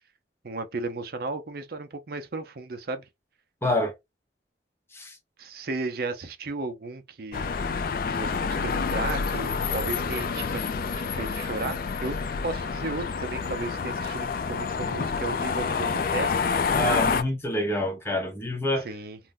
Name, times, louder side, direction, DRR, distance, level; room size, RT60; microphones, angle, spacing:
voice 1, 0.4-3.1 5.4-7.5 8.1-10.6 11.0-12.2 12.4-16.3 18.8-19.2, right 3 dB, 55° right, 0.5 m, -34 dB
voice 2, 3.6-3.9 4.9-5.2 16.7-18.9, left 1 dB, 15° left, 0.7 m, -27 dB
sound 1, 7.3-17.2, left 5 dB, 50° left, 0.3 m, -28 dB
2.6 x 2.1 x 3.6 m
head